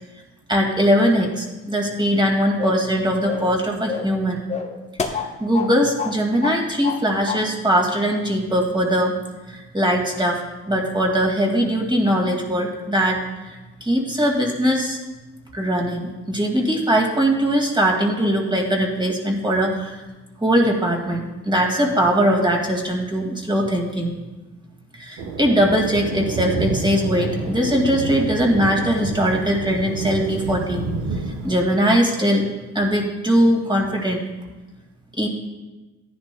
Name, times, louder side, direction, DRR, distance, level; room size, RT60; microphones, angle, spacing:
voice 1, 0.5-4.4 5.1-9.1 9.5-15.0 15.5-20.0 20.4-24.2 24.9-30.9 31.3-32.5 32.7-34.2 35.2-35.3, equal, 15° right, 0 dB, 2.1 m, -21 dB
sound 1, 2.6-2.9 3.2-3.6 3.9-4.2 4.5-5.7 6.0-6.2 6.4-7.0 7.3-7.4, left 6 dB, 20° left, 1.0 m, -28 dB
Thunder, 25.2-31.5, right 3 dB, 70° right, 1.3 m, -28 dB
14.0 x 10.5 x 2.3 m, 1.1 s
cardioid pair, 90°, 30 cm